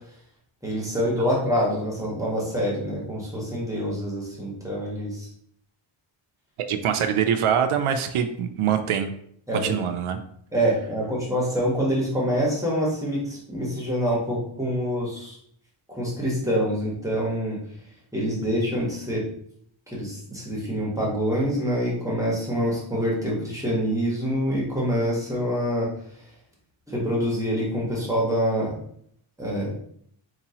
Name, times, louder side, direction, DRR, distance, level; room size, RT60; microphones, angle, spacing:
voice 1, 0.6-5.3 9.5-9.7 10.5-15.4 15.9-17.6 18.1-19.2 19.9-25.9 26.9-28.7 29.4-29.7, equal, 5° right, -5 dB, 1.1 m, -26 dB
voice 2, 6.7-9.1 9.5-10.2 18.4-18.5, right 8 dB, 85° right, 7 dB, 0.6 m, -24 dB
4.5 x 2.9 x 2.8 m, 0.66 s
wide cardioid pair, 145°, 49 cm